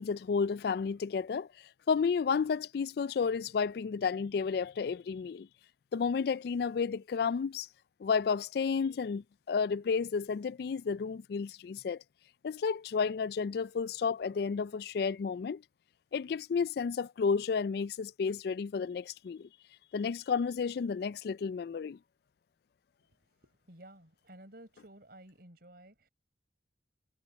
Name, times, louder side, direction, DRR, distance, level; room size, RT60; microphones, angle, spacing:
voice 1, 0.0-1.5 1.9-5.5 5.9-7.7 8.0-12.0 12.4-15.6 16.1-19.5 19.9-22.0, left 5 dB, 55° left, 0.3 m, -32 dB
voice 2, 23.0-26.1, right 1 dB, 50° right, 5.9 m, -54 dB
head